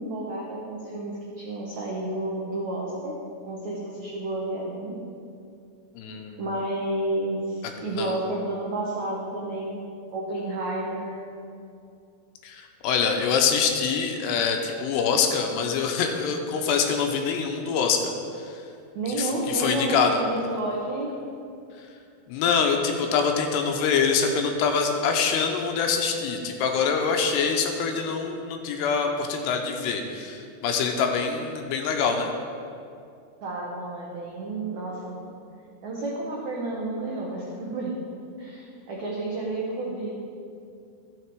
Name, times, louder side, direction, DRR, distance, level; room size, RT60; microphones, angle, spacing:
voice 1, 0.0-3.2 3.5-5.0 6.4-9.8 10.1-11.2 18.9-21.1 33.4-35.2 35.8-38.0 38.4-40.1, right 2 dB, 80° right, -4 dB, 1.6 m, -31 dB
voice 2, 6.0-6.4 7.9-8.2 12.4-18.1 19.2-20.2 22.3-32.3, left 6 dB, 80° left, 4 dB, 2.7 m, -25 dB
13.5 x 6.6 x 4.6 m, 2.4 s
omnidirectional pair, 5.0 m